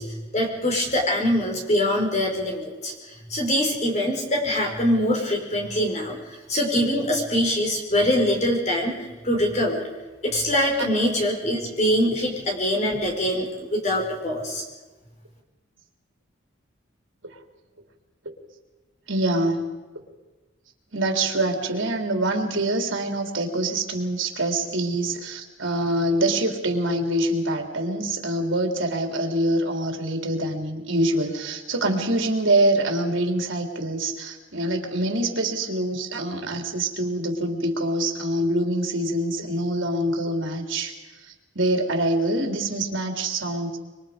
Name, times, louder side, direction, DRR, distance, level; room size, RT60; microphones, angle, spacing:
voice 1, 0.0-6.2 6.5-9.8 10.2-14.6, left 1 dB, 35° left, -1 dB, 4.8 m, -24 dB
voice 2, 19.1-19.7 20.9-41.0 41.2-43.8, right 1 dB, 75° right, 3 dB, 3.6 m, -25 dB
26.0 x 24.5 x 5.2 m, 1.2 s
head